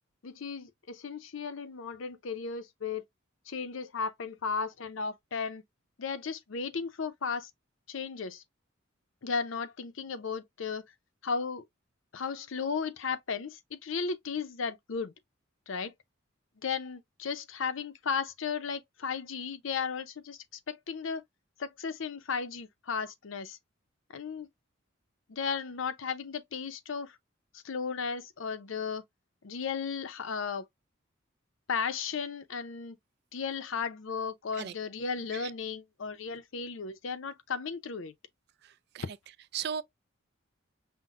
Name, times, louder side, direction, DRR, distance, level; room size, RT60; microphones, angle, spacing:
voice 1, 0.2-3.0 3.5-5.6 6.0-7.5 7.9-8.4 9.2-10.9 11.2-11.6 12.1-15.1 15.7-15.9 16.6-21.2 21.6-23.6 24.1-24.5 25.3-27.2 27.5-29.0 29.4-30.7 31.7-33.0 33.3-38.1, left 5 dB, 75° left, 0.6 m, -35 dB
voice 2, 38.6-39.0 39.5-39.8, right 8 dB, 55° right, 0.3 m, -36 dB
5.7 x 2.1 x 2.4 m
head